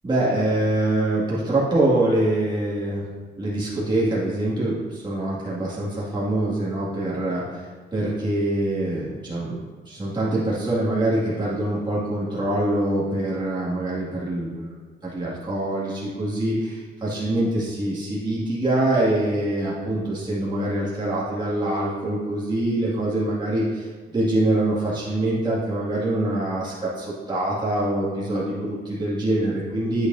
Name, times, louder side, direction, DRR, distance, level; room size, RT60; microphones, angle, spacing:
voice 1, 0.0-3.1 3.4-30.1, right 1 dB, 20° right, -8 dB, 2.2 m, -24 dB
8.7 x 8.2 x 2.7 m, 1.5 s
cardioid pair, 90°, 20 cm